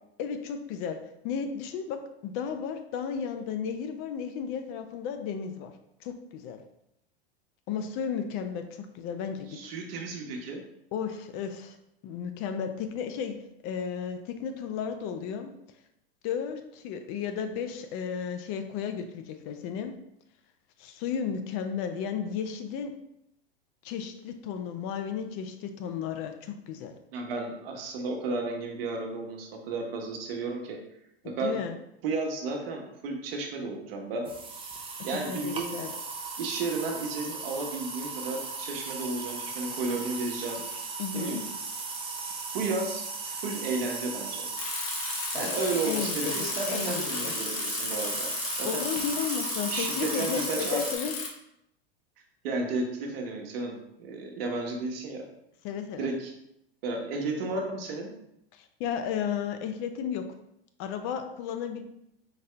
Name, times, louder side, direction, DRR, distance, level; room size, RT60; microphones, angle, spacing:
voice 1, 0.2-5.7 6.0-6.6 7.7-9.5 10.9-11.8 12.0-13.4 13.6-15.5 16.2-19.9 20.8-22.9 23.8-26.9 31.4-31.7 35.1-35.9 41.0-41.4 45.3-45.5 45.9-47.3 48.6-51.1 55.6-56.1 58.5-60.3 60.8-61.8, left 7 dB, 45° left, 8 dB, 0.5 m, -34 dB
voice 2, 9.5-10.6 27.1-30.8 31.2-31.6 32.0-34.3 35.0-35.7 36.4-40.6 41.1-41.4 42.5-44.5 45.3-48.3 48.6-48.8 49.7-50.8 52.4-55.3 56.0-56.3 56.8-58.1, right 3 dB, 70° right, 1 dB, 1.0 m, -33 dB
sound 1, 34.3-51.0, right 4 dB, 20° right, 0.5 m, -36 dB
Bicycle, 44.6-51.3, left 4 dB, 65° left, 0.9 m, -34 dB
4.1 x 2.7 x 3.3 m, 0.80 s
hypercardioid pair, 105°, 31 cm